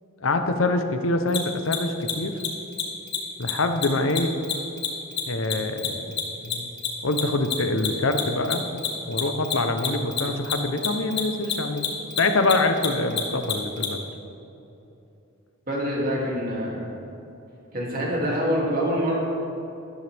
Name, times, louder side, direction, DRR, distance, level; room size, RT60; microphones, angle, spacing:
voice 1, 0.2-2.4 3.4-4.3 5.3-6.7 7.0-11.8 12.2-14.0, left 2 dB, 70° left, 7 dB, 0.9 m, -25 dB
Mechanisms, 1.3-1.4 1.7-1.8 2.0-2.1 2.4-2.5 2.7-2.8 3.1-3.2 3.4-3.5 3.8-6.5 6.8-13.9, left 10 dB, 50° left, 1.6 m, -26 dB
voice 2, 15.7-16.9 17.7-19.2, equal, 40° right, -4 dB, 2.7 m, -25 dB
12.5 x 12.5 x 3.5 m, 2.9 s
head